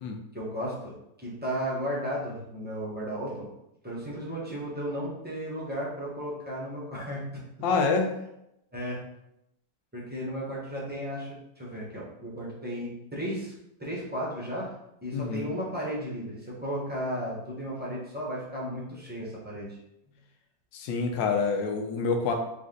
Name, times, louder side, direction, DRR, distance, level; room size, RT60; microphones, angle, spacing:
voice 1, 0.3-3.5 3.8-7.4 8.7-9.0 9.9-13.5 13.8-14.7 15.0-19.8 22.3-22.4, equal, 10° right, -6 dB, 0.6 m, -34 dB
voice 2, 7.6-8.1 15.1-15.5 20.7-22.3, left 4 dB, 80° left, 3 dB, 1.3 m, -27 dB
4.1 x 2.5 x 3.7 m, 0.83 s
omnidirectional pair, 2.0 m